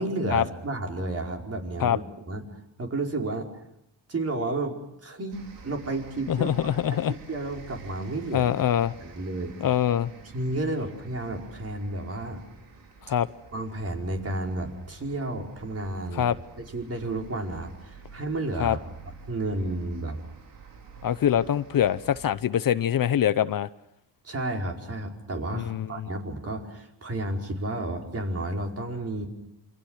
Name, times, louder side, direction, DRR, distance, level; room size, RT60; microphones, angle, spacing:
voice 1, 0.0-2.0 2.3-2.4 2.8-3.5 4.1-6.8 7.1-8.5 9.0-9.5 10.3-12.4 13.5-16.3 16.6-18.9 19.3-20.2 24.2-29.3, right 2 dB, 35° right, 1 dB, 5.1 m, -32 dB
sound 1, 5.3-22.3, right 4 dB, 85° right, 5.0 m, -49 dB
voice 2, 6.3-7.1 8.3-8.9 9.6-10.1 13.1-13.3 16.1-16.4 18.6-18.8 21.0-23.7 25.5-26.1, left 10 dB, 50° left, 14 dB, 0.9 m, -24 dB
28.0 x 25.0 x 6.5 m, 0.82 s
cardioid pair, 95°, 42 cm